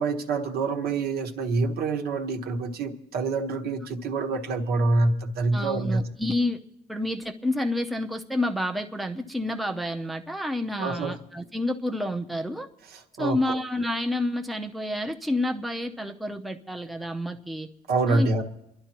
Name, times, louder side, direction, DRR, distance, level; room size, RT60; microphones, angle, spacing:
voice 1, 0.0-6.0 10.8-11.1 12.9-13.6 17.9-18.4, right 3 dB, 65° right, 4 dB, 1.2 m, -26 dB
voice 2, 5.5-6.6 6.9-12.7 13.2-17.7 18.0-18.3, left 1 dB, ahead, 4 dB, 0.7 m, -29 dB
29.5 x 11.0 x 3.0 m, 0.86 s
cardioid pair, 110°, 17 cm